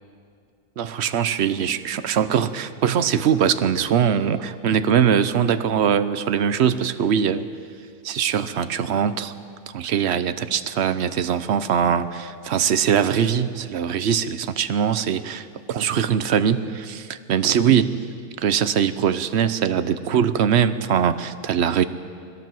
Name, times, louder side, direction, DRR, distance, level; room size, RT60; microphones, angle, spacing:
voice 1, 0.8-7.5 8.0-9.3 9.7-18.0 18.4-21.8, right 8 dB, 50° right, 12 dB, 0.9 m, -22 dB
21.5 x 16.5 x 7.7 m, 2.2 s
omnidirectional pair, 1.7 m